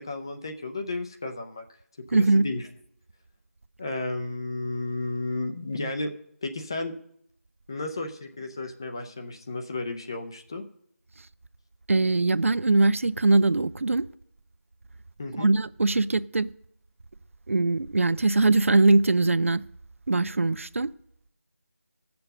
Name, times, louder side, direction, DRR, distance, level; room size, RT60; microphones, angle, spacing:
voice 1, 0.0-1.6 2.1-2.6 3.8-6.1 6.4-6.9 7.7-10.6 15.2-15.5, left 2 dB, 20° left, 0.5 m, -33 dB
voice 2, 2.1-2.4 11.9-14.0 15.3-16.5 17.5-19.6 20.1-20.9, right 2 dB, 60° right, 0.4 m, -21 dB
13.5 x 6.9 x 6.5 m
figure-of-eight pair, 170°, 8 cm